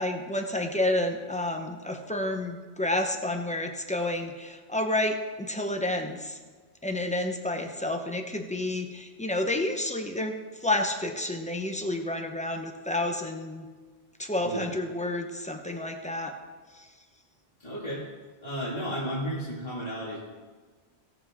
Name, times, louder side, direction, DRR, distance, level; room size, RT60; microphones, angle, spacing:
voice 1, 0.0-6.4 6.8-13.7 14.2-16.3 16.7-16.9, left 1 dB, 5° left, 4 dB, 0.8 m, -30 dB
voice 2, 17.6-18.0 18.4-20.2, equal, 35° left, -7 dB, 2.3 m, -33 dB
18.0 x 7.6 x 3.7 m, 1.4 s
omnidirectional pair, 1.1 m